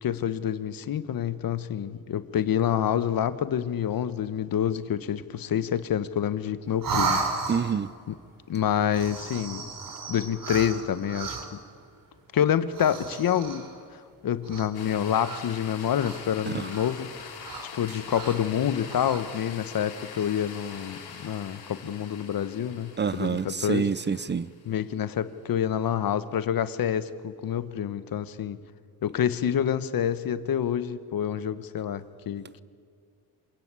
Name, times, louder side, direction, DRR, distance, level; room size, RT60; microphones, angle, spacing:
voice 1, 0.0-7.2 8.1-8.2 8.5-9.7 10.1-11.4 12.3-13.7 14.2-17.3 17.7-23.8 24.7-28.6 29.0-32.6, left 9 dB, 65° left, 1.3 m, -27 dB
sound 1, 6.8-7.9 8.8-11.7 12.7-13.8 14.4-14.9 15.2-16.4 16.7-16.9 17.4-18.5 18.8-19.2, right 4 dB, 60° right, 3.4 m, -34 dB
voice 2, 7.5-7.9 16.5-16.7 23.0-24.5, right 6 dB, 30° right, 0.6 m, -27 dB
sound 2, 14.7-25.0, left 6 dB, 90° left, 4.1 m, -44 dB
27.0 x 17.5 x 8.4 m
cardioid pair, 90°, 37 cm